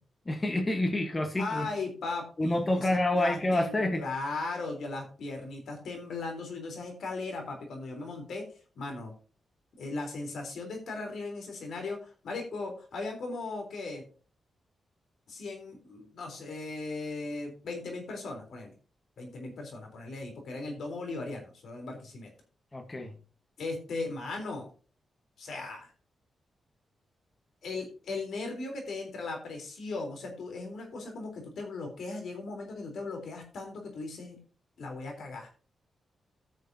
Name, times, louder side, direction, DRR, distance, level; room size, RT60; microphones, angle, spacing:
voice 1, 0.3-1.7 2.4-4.0 22.7-23.2, left 1 dB, 25° left, 1.2 m, -28 dB
voice 2, 1.4-8.5 8.8-9.1 9.8-14.0 15.3-18.7 19.2-22.3 23.6-24.7 25.4-25.9 27.6-34.4 34.8-35.5, left 3 dB, 75° left, 3.5 m, -38 dB
17.0 x 6.6 x 2.7 m
cardioid pair, 90°, 0 cm